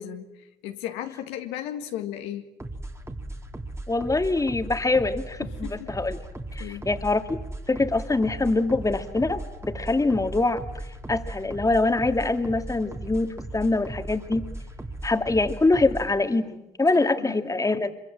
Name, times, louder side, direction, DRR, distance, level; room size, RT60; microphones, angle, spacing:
voice 1, 0.0-2.5 5.4-6.0 6.6-6.9 16.9-17.4, left 11 dB, 85° left, 6 dB, 1.8 m, -36 dB
sound 1, 2.6-16.2, right 2 dB, 15° right, 2.7 m, -37 dB
voice 2, 3.9-6.2 6.5-7.4 7.7-10.6 11.1-14.4 15.0-17.9, left 2 dB, 20° left, 8 dB, 2.2 m, -24 dB
25.0 x 24.0 x 7.6 m, 0.97 s
supercardioid pair, 65°, 18 cm